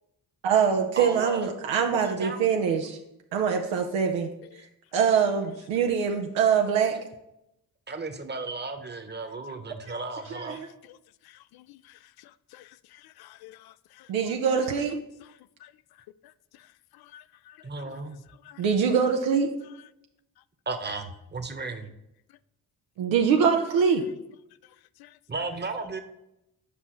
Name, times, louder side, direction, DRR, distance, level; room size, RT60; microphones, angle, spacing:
voice 1, 0.4-3.0 3.3-4.3 4.9-6.9 10.3-10.7 14.1-15.0 18.6-19.5 23.0-24.0, right 6 dB, 80° right, 0.7 m, -24 dB
voice 2, 1.0-1.5 2.0-2.5 7.9-10.6 17.6-18.2 20.7-21.9 25.3-26.0, right 3 dB, 25° right, 1.1 m, -34 dB
voice 3, 12.5-14.1 15.6-15.7 17.1-18.0 18.5-18.6 25.0-25.1, left 14 dB, 60° left, 0.5 m, -51 dB
8.4 x 5.4 x 3.1 m
hypercardioid pair, 45°, 45 cm